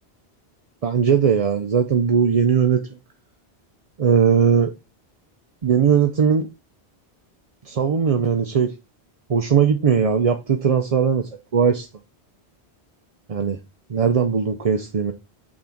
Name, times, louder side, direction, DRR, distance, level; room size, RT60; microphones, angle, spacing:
voice 1, 0.8-2.8 4.0-4.7 5.6-6.5 7.7-8.7 9.3-11.9 13.3-13.6 13.9-15.1, right 7 dB, 40° right, 0.6 m, -19 dB
6.4 x 3.6 x 5.8 m
omnidirectional pair, 1.1 m